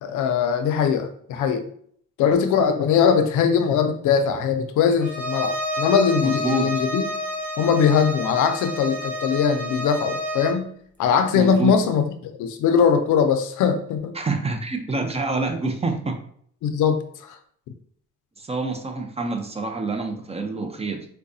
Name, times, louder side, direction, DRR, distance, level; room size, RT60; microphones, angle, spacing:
voice 1, 0.0-1.6 2.2-7.1 7.6-10.7 11.0-12.0 12.4-14.1 16.6-17.0 17.3-17.4, left 7 dB, 80° left, 8 dB, 0.5 m, -21 dB
Bowed string instrument, 5.0-10.6, equal, 5° left, 1.0 m, -29 dB
voice 2, 6.2-6.7 11.3-11.7 14.1-16.2 18.4-21.1, right 3 dB, 20° right, 5 dB, 0.5 m, -27 dB
4.7 x 2.2 x 2.6 m, 0.62 s
cardioid pair, 90°, 30 cm